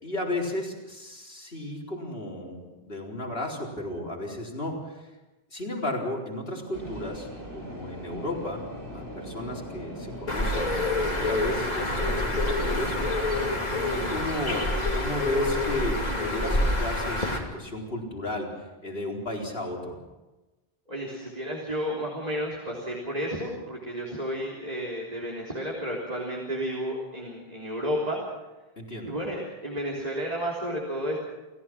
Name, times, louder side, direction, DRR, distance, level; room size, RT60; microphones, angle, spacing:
voice 1, 0.0-5.0 5.5-8.7 8.9-13.3 13.9-18.5 18.8-20.0 28.8-29.1, left 1 dB, 70° left, -1 dB, 4.4 m, -34 dB
sound 1, 6.7-14.3, equal, 80° right, 4.4 m, -40 dB
Bird, 10.3-17.4, left 2 dB, 40° left, 2.9 m, -27 dB
voice 2, 20.9-28.2 29.0-31.2, equal, 40° right, -3 dB, 3.7 m, -32 dB
29.5 x 15.5 x 6.1 m, 1.1 s
omnidirectional pair, 1.0 m